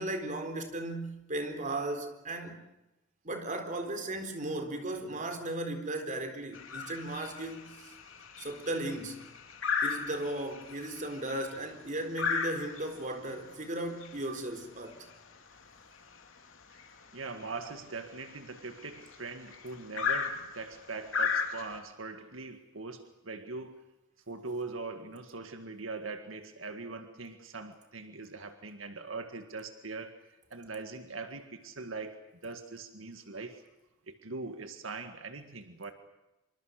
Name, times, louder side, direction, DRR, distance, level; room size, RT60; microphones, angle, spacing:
voice 1, 0.0-2.6 3.2-7.9 8.4-9.3 9.8-15.1, right 1 dB, 40° right, 4.0 m, -36 dB
sound 1, 6.5-21.8, left 6 dB, 90° left, 3.4 m, -37 dB
voice 2, 17.1-23.8 24.3-33.6 34.1-35.9, right 3 dB, 85° right, 1.9 m, -42 dB
26.5 x 25.0 x 6.5 m
head